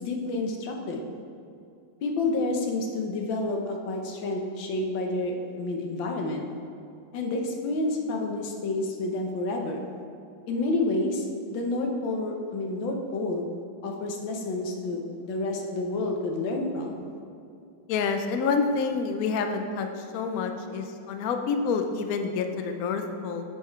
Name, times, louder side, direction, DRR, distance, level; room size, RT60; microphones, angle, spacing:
voice 1, 0.0-1.0 2.0-6.5 7.1-9.8 10.5-13.5 13.8-17.0, left 2 dB, 90° left, 2 dB, 1.6 m, -29 dB
voice 2, 17.9-19.9 20.1-23.4, left 5 dB, 70° left, 6 dB, 0.9 m, -28 dB
7.5 x 5.6 x 4.5 m, 2.5 s
omnidirectional pair, 2.0 m